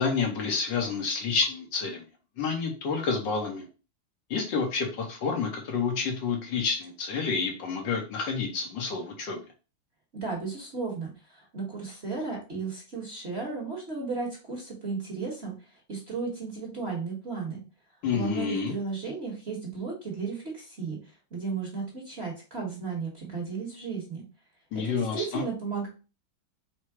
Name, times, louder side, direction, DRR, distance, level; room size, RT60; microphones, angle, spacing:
voice 1, 0.0-2.0 2.4-3.6 4.3-9.4 18.0-18.7 24.7-25.4, left 5 dB, 65° left, 2 dB, 1.6 m, -29 dB
voice 2, 10.1-15.5 15.9-17.6 18.1-21.0 21.3-24.2 24.7-25.9, right 4 dB, 40° right, -2 dB, 1.1 m, -34 dB
4.5 x 2.0 x 4.6 m, 0.32 s
omnidirectional pair, 2.2 m